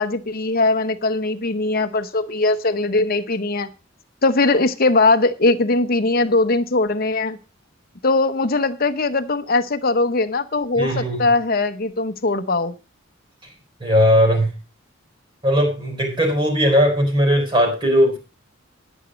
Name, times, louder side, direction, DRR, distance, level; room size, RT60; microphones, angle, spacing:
voice 1, 0.0-3.7 4.2-7.4 8.0-12.7, left 3 dB, 45° left, 10 dB, 0.9 m, -20 dB
voice 2, 10.8-11.3 13.8-14.5 15.4-18.2, equal, 25° right, 2 dB, 4.7 m, -18 dB
10.5 x 10.0 x 5.1 m, 0.31 s
head